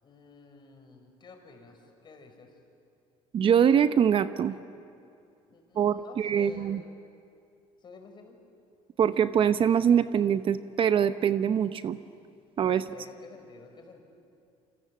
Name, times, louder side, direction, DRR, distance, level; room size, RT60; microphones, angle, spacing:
voice 1, 0.0-2.5 5.5-7.0 7.8-8.4 12.7-14.0, left 4 dB, 35° left, 4 dB, 5.2 m, -51 dB
voice 2, 3.3-4.5 5.8-6.8 9.0-12.0 12.6-12.8, right 8 dB, 45° right, 11 dB, 0.8 m, -23 dB
28.5 x 25.5 x 7.7 m, 2.5 s
cardioid pair, 120°, 13 cm